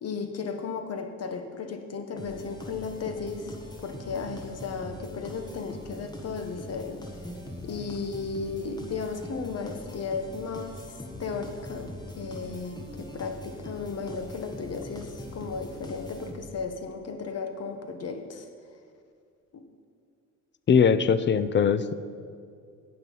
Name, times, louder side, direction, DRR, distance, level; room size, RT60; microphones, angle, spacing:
voice 1, 0.0-3.5 3.8-7.0 7.6-10.8 11.2-18.5 19.5-19.6, left 5 dB, 55° left, 6 dB, 1.3 m, -35 dB
sound 1, 2.2-16.7, left 1 dB, 15° left, 1.7 m, -42 dB
voice 2, 20.7-21.9, left 6 dB, 40° left, 14 dB, 0.6 m, -21 dB
17.0 x 5.8 x 5.6 m, 2.3 s
cardioid pair, 90°, 30 cm